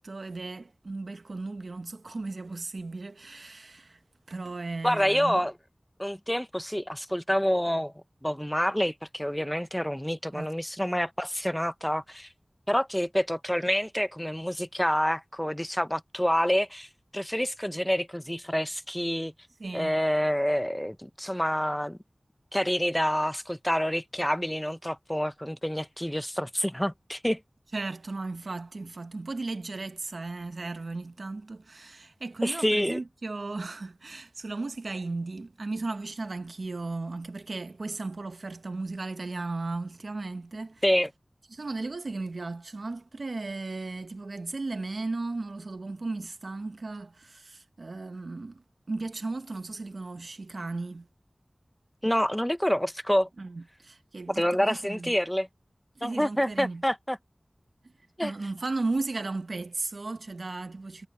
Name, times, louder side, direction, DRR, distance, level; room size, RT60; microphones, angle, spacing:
voice 1, 0.0-4.0 4.3-5.4 10.3-10.5 19.6-19.9 27.7-40.8 41.5-51.1 53.4-55.1 56.0-56.8 57.8-57.9 58.2-61.1, right 3 dB, 90° right, 1.0 m, -35 dB
voice 2, 4.8-5.5 6.0-7.9 8.2-12.3 12.7-16.9 17.1-19.3 19.7-22.0 22.5-27.4 32.4-33.0 40.8-41.1 52.0-53.3 54.3-55.5 56.0-57.2 58.2-58.3, equal, 10° left, 0.9 m, -27 dB
wide cardioid pair, 50°, 0 cm